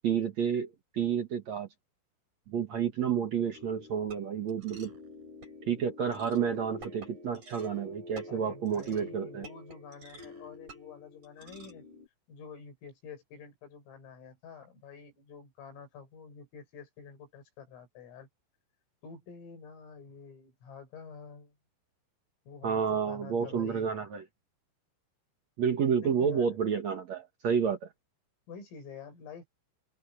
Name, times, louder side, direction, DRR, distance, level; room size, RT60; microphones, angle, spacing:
voice 1, 0.0-1.7 2.5-4.9 5.7-9.4 22.6-24.2 25.6-27.9, right 7 dB, 75° right, 1.6 m, -30 dB
sound 1, 3.5-12.1, left 1 dB, 35° right, 7.7 m, -48 dB
voice 2, 8.3-11.8 12.3-18.3 19.0-21.6 22.5-23.9 26.0-26.6 28.5-29.5, left 5 dB, 75° left, 8.8 m, -48 dB
omnidirectional pair, 5.9 m